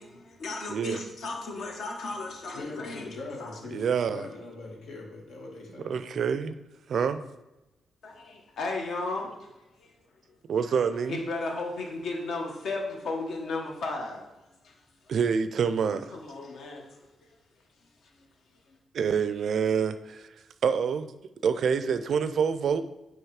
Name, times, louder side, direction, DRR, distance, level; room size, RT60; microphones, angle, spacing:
voice 1, 0.0-3.6 8.0-10.4 10.7-15.1 15.9-18.8, left 3 dB, 65° left, 1.2 m, -36 dB
voice 2, 0.7-1.0 3.7-4.3 5.8-6.6 6.9-7.2 10.5-11.2 15.1-16.0 18.9-20.4 20.6-21.1 21.4-22.8, right 6 dB, 55° right, 0.4 m, -26 dB
voice 3, 2.5-6.0, left 3 dB, 80° left, 1.7 m, -42 dB
9.0 x 3.0 x 4.8 m
wide cardioid pair, 165°, 0 cm